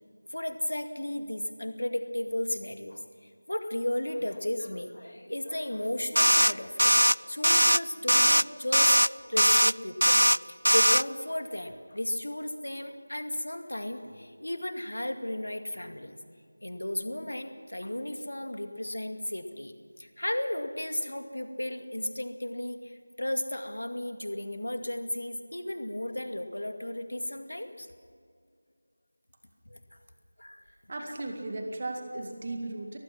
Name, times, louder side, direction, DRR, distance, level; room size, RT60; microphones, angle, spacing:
voice 1, 0.3-6.9 7.2-16.1 16.6-27.9 29.7-29.8 30.4-30.6 31.0-31.1, left 1 dB, 65° left, 7 dB, 2.2 m, -34 dB
sound 1, 6.2-6.5 6.8-7.1 7.4-7.8 8.1-8.4 8.7-9.1 9.4-9.7 10.0-10.4 10.7-11.0, equal, 85° right, 0.4 m, -20 dB
voice 2, 30.9-33.0, right 2 dB, 30° right, 3 dB, 2.1 m, -36 dB
23.5 x 19.0 x 6.0 m, 2.2 s
figure-of-eight pair, 170°, 0 cm